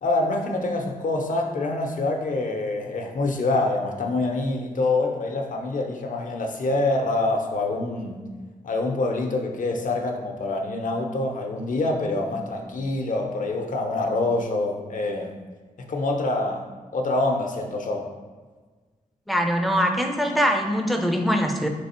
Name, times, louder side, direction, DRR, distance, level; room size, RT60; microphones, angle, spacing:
voice 1, 0.0-8.2 8.6-15.4 15.8-16.6 16.9-18.1, left 2 dB, 65° left, 3 dB, 0.7 m, -26 dB
voice 2, 19.3-21.7, equal, ahead, 4 dB, 0.5 m, -22 dB
3.4 x 3.2 x 4.3 m, 1.4 s
cardioid pair, 65°, 15 cm